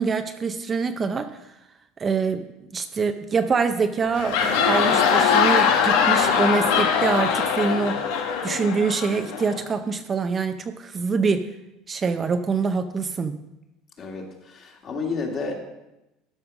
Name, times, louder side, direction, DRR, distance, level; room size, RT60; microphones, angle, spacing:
voice 1, 0.0-1.4 2.0-2.5 2.7-11.5 11.9-13.4, right 5 dB, 25° right, 8 dB, 0.5 m, -25 dB
sound 1, 4.0-9.6, left 6 dB, 85° left, 1.4 m, -21 dB
voice 2, 14.0-15.5, left 4 dB, 40° left, 1 dB, 2.1 m, -31 dB
12.5 x 5.3 x 6.0 m, 0.95 s
supercardioid pair, 135°, 0 cm